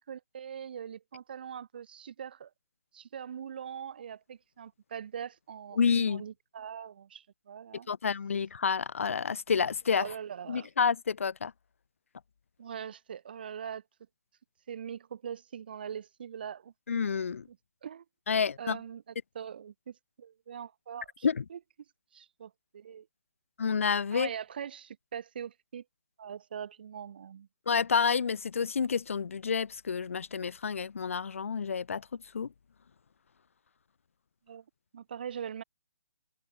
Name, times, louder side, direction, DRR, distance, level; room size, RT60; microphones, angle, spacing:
voice 1, 0.1-2.5 2.9-5.8 6.1-7.9 9.9-10.7 12.6-13.8 14.7-16.7 17.5-17.6 17.8-18.0 18.6-21.6 22.1-23.1 24.1-25.8 26.2-27.5 34.5-34.6 34.9-35.6, right 8 dB, 35° right, 4.4 m, -42 dB
voice 2, 5.8-6.2 7.9-10.1 10.5-11.5 16.9-17.5 18.3-18.8 21.2-21.4 23.6-24.3 27.7-32.1 32.3-32.5, left 6 dB, 50° left, 0.9 m, -29 dB
hypercardioid pair, 180°, 9 cm